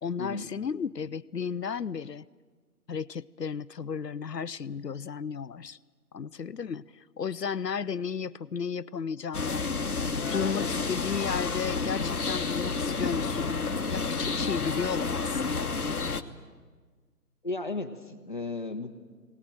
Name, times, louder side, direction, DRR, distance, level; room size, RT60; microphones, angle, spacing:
voice 1, 0.0-2.2 2.9-5.8 6.1-9.7 10.1-13.6 13.9-15.8, left 6 dB, 75° left, 19 dB, 0.7 m, -34 dB
sound 1, 9.3-16.2, left 4 dB, 60° left, 1.1 m, -30 dB
voice 2, 17.4-18.9, left 3 dB, 30° left, 7 dB, 1.0 m, -34 dB
19.5 x 19.0 x 8.9 m, 1.4 s
figure-of-eight pair, 155°, 50 cm